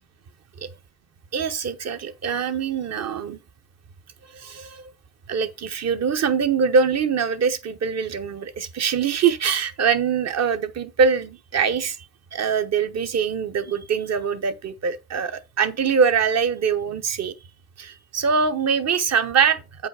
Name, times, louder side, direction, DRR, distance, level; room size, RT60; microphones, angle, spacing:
voice 1, 1.3-3.4 4.3-4.9 5.3-12.0 12.3-17.3 17.8-19.9, right 6 dB, 60° right, 1.0 m, -23 dB
8.3 x 5.3 x 4.7 m
cardioid pair, 110°, 30 cm